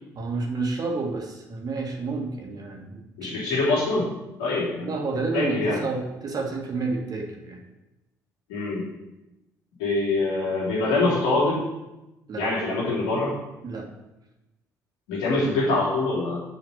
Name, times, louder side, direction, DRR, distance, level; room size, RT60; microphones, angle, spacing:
voice 1, 0.2-3.4 4.8-7.6 12.3-12.5 13.6-13.9, right 3 dB, 45° right, 0 dB, 2.1 m, -30 dB
voice 2, 3.2-4.1 4.4-4.9 5.3-5.8 8.5-8.9 9.8-11.6 12.4-13.3 15.1-16.4, left 2 dB, 75° left, -6 dB, 3.2 m, -24 dB
6.2 x 5.7 x 6.6 m, 0.97 s
hypercardioid pair, 50°, 9 cm